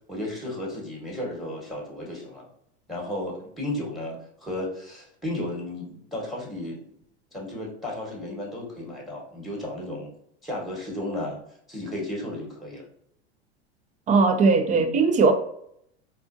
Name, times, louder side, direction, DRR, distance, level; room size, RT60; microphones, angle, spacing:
voice 1, 0.1-2.5 2.9-6.8 7.3-10.1 10.4-11.4 11.7-12.9 14.7-14.9, left 1 dB, ahead, 1.2 m, -34 dB
voice 2, 14.1-15.3, right 4 dB, 25° right, 0.4 m, -19 dB
4.1 x 2.5 x 2.5 m
hypercardioid pair, 95°, 33 cm